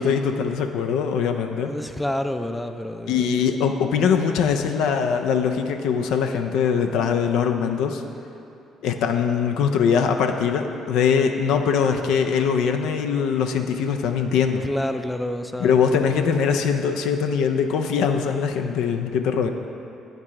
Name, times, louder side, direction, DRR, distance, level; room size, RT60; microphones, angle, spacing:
voice 1, 0.0-1.7 3.1-8.0 8.8-14.6 15.6-19.5, left 6 dB, 75° left, 5 dB, 0.4 m, -22 dB
voice 2, 1.5-3.3 14.6-15.8, left 1 dB, 10° left, 8 dB, 0.4 m, -28 dB
8.7 x 4.7 x 3.6 m, 2.8 s
supercardioid pair, 60°, 0 cm